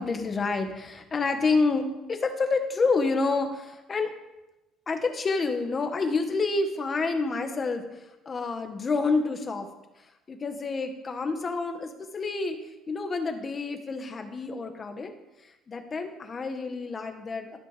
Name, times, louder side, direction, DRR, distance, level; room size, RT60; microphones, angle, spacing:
voice 1, 0.0-4.1 4.9-9.7 10.3-12.6 12.9-15.1 15.4-17.6, left 3 dB, 25° left, 6 dB, 1.7 m, -28 dB
13.5 x 12.5 x 5.2 m, 0.99 s
cardioid pair, 150°, 0 cm